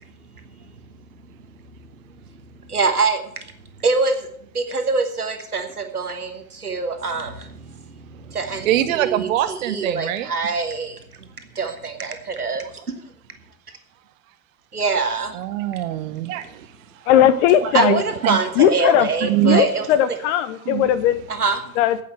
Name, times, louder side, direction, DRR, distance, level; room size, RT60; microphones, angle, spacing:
voice 1, 2.7-3.2 3.8-4.3 4.5-7.7 8.0-11.0 11.5-12.7 14.7-15.4 17.7-19.9 21.4-21.6, right 4 dB, 90° right, 7 dB, 1.3 m, -24 dB
voice 2, 8.6-10.3 15.3-16.7 17.6-17.9 18.2-18.4 19.2-19.6 20.7-20.8, right 13 dB, 60° right, 12 dB, 0.8 m, -23 dB
voice 3, 17.1-18.0 18.6-19.1 19.4-21.2 21.8-22.0, left 11 dB, 50° left, 14 dB, 0.9 m, -18 dB
9.7 x 8.4 x 7.6 m, 0.66 s
figure-of-eight pair, 75°, 44 cm